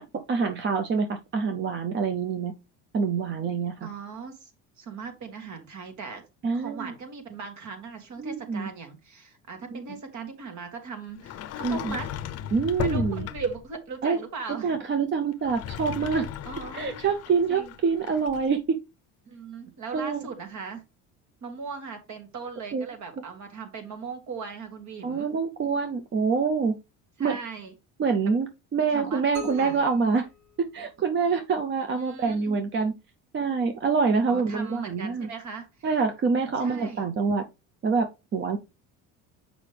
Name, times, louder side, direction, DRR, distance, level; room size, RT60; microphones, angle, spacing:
voice 1, 0.3-2.5 2.9-3.9 6.4-6.9 8.2-8.7 11.6-12.0 12.5-13.3 14.0-14.2 14.5-16.3 16.7-18.8 19.9-20.2 22.7-22.9 25.0-26.8 27.2-27.4 28.0-30.3 30.6-32.9 33.3-35.3 35.8-37.4 37.8-38.6, right 5 dB, 30° right, 0.6 m, -26 dB
voice 2, 3.8-4.5 4.8-6.2 6.5-12.1 12.8-14.8 16.5-17.0 17.5-17.7 19.3-20.8 21.4-25.3 27.2-27.7 28.2-28.3 28.9-29.2 29.5-29.8 31.9-32.6 34.3-35.7 36.6-37.1, right 5 dB, 50° right, 1.9 m, -38 dB
Sliding door, 11.2-13.7 15.3-18.5, left 9 dB, 45° left, 0.6 m, -35 dB
sound 1, 29.3-31.3, left 5 dB, 70° right, 3.3 m, -43 dB
6.5 x 5.0 x 3.4 m
supercardioid pair, 100°, 36 cm